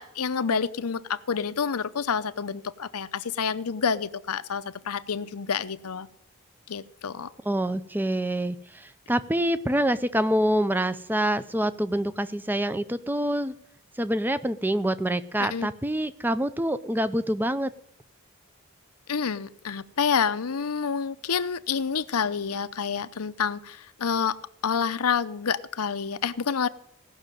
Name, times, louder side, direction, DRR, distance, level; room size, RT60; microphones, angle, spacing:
voice 1, 0.0-6.1 6.7-7.3 15.4-15.7 19.1-26.7, left 6 dB, 85° left, 13 dB, 0.7 m, -28 dB
voice 2, 7.5-13.5 14.0-17.7, right 1 dB, 10° right, 13 dB, 0.5 m, -26 dB
17.0 x 6.3 x 9.1 m, 0.70 s
head